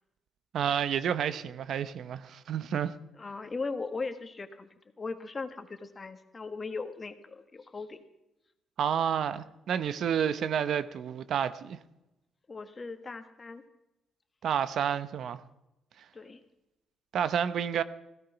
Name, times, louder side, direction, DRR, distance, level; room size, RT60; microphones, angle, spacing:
voice 1, 0.5-2.9 8.8-11.8 14.4-15.4 17.1-17.8, right 8 dB, 65° right, 0.9 m, -30 dB
voice 2, 3.2-4.7 5.0-8.0 12.5-13.6 16.1-16.4, left 4 dB, 30° left, 1.5 m, -38 dB
16.0 x 13.0 x 5.9 m
cardioid pair, 90°, 0 cm